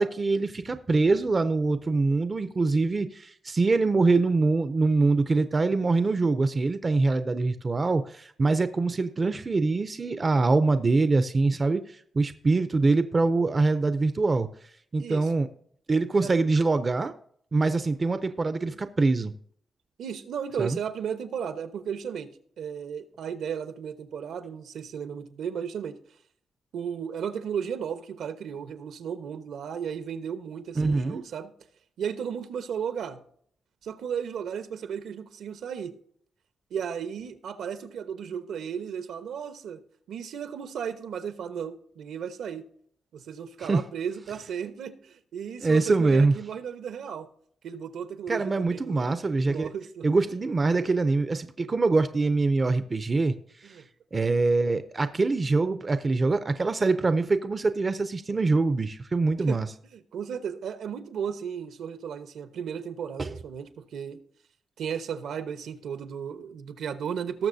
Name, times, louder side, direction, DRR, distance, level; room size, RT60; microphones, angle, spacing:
voice 1, 0.0-14.5 14.9-15.5 15.9-17.1 17.5-19.3 20.6-20.8 30.8-31.2 43.6-43.8 45.6-46.3 48.3-49.7 50.0-53.4 53.6-53.8 54.1-59.7 63.2-63.3, right 3 dB, 25° right, 11 dB, 0.5 m, -24 dB
voice 2, 15.0-15.3 16.2-16.3 18.7-18.8 20.0-22.3 22.6-26.0 26.7-31.5 32.0-33.2 33.8-35.9 36.7-39.8 40.1-42.6 43.1-47.3 47.6-49.1 49.4-50.1 53.6-53.9 59.5-64.2 64.8-67.5, right 7 dB, 75° right, 9 dB, 1.0 m, -34 dB
19.0 x 6.8 x 2.7 m, 0.62 s
wide cardioid pair, 170°, 0 cm